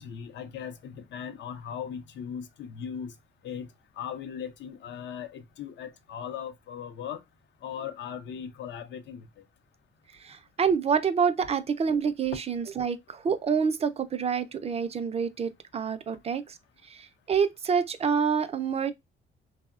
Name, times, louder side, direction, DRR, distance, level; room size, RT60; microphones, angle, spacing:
voice 1, 0.0-3.1 3.4-3.7 4.0-7.2 7.6-9.3, left 8 dB, 65° left, 0.5 m, -38 dB
voice 2, 10.2-16.6 16.8-18.9, right 6 dB, 30° right, 0.4 m, -27 dB
2.8 x 2.1 x 2.3 m
cardioid pair, 90°, 20 cm